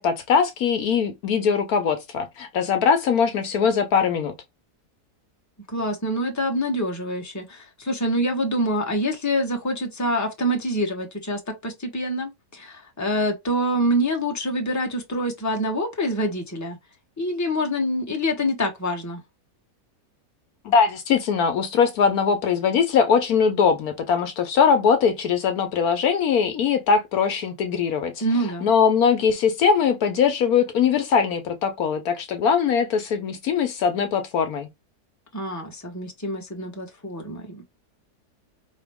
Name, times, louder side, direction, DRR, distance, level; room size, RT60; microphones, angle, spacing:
voice 1, 0.0-4.3 20.6-28.1 28.6-34.7, left 6 dB, 70° left, 1.2 m, -21 dB
voice 2, 5.7-16.8 17.2-19.2 28.2-28.7 35.3-37.6, equal, 10° left, 1.1 m, -26 dB
5.1 x 2.9 x 3.5 m
omnidirectional pair, 1.7 m